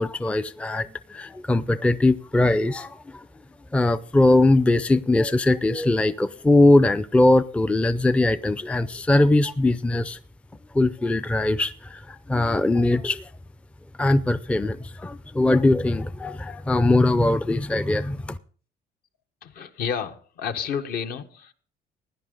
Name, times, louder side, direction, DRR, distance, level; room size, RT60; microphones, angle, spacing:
voice 1, 0.0-3.3 3.7-10.2 10.7-13.3 14.0-18.4, left 2 dB, 5° left, 14 dB, 0.5 m, -21 dB
voice 2, 19.4-21.5, left 7 dB, 60° left, 7 dB, 1.2 m, -30 dB
16.5 x 10.0 x 3.8 m, 0.41 s
cardioid pair, 110°, 17 cm